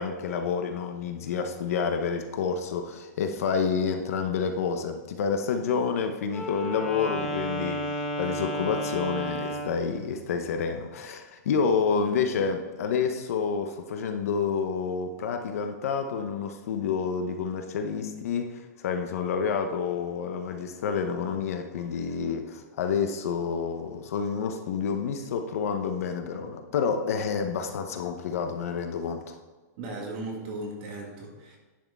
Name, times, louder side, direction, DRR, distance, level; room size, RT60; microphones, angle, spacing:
voice 1, 0.0-29.4, left 6 dB, 55° left, 6 dB, 0.9 m, -29 dB
Wind instrument woodwind instrument, 6.3-9.8, equal, 5° left, 0.7 m, -32 dB
voice 2, 29.8-31.6, right 2 dB, 35° right, -1 dB, 1.9 m, -37 dB
10.5 x 6.3 x 3.6 m, 1.3 s
supercardioid pair, 175°, 9 cm